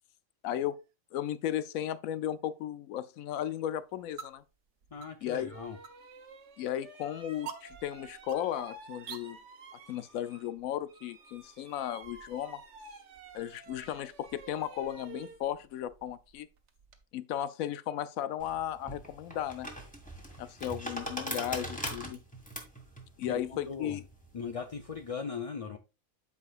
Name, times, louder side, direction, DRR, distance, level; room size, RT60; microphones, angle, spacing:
voice 1, 0.4-0.8 1.1-4.4 5.2-5.5 6.6-9.4 9.9-12.6 13.3-16.5 17.1-19.7 20.4-22.2 23.2-24.0, left 11 dB, 85° left, 1.0 m, -35 dB
sound 1, 0.5-9.2, right 7 dB, 90° right, 1.3 m, -51 dB
sound 2, 4.8-4.9 5.4-10.6 10.9-17.0, right 4 dB, 60° right, 1.3 m, -52 dB
voice 2, 4.9-5.8 23.3-24.0 24.3-25.8, left 5 dB, 45° left, 0.4 m, -39 dB
sound 3, 18.4-25.1, equal, 5° left, 1.8 m, -41 dB
13.0 x 4.9 x 2.5 m
omnidirectional pair, 1.4 m